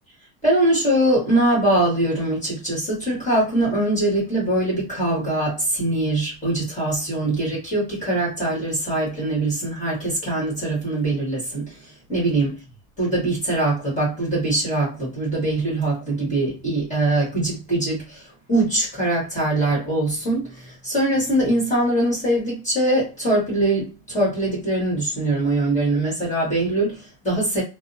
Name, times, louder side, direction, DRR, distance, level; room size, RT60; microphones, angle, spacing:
voice 1, 0.4-12.5 13.0-27.6, right 1 dB, 15° left, 1.3 m, -22 dB
2.6 x 2.0 x 2.6 m
cardioid pair, 165°, 47 cm